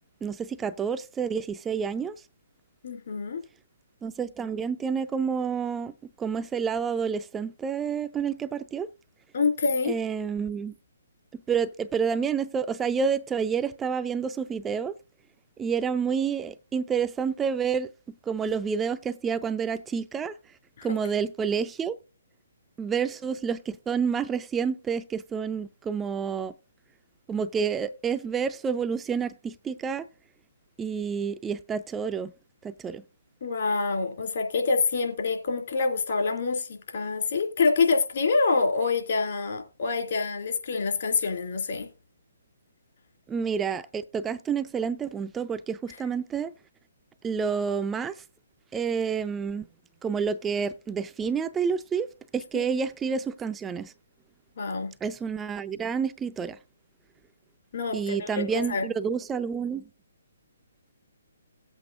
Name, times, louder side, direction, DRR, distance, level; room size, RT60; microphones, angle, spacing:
voice 1, 0.2-2.1 4.0-8.9 9.9-10.7 11.3-14.9 15.6-17.9 18.3-20.3 20.8-22.0 22.8-26.5 27.3-30.1 30.8-32.3 32.6-33.0 43.3-46.5 47.2-48.1 48.7-49.7 50.0-52.1 52.3-53.9 55.0-56.6 57.9-59.8, right 6 dB, 10° right, 0.4 m, -29 dB
voice 2, 2.8-3.4 9.3-9.9 20.8-20.9 33.4-41.9 52.5-52.6 54.6-54.9 57.7-58.9, left 4 dB, 60° left, 2.8 m, -26 dB
17.0 x 8.1 x 2.6 m
figure-of-eight pair, 135°, 0 cm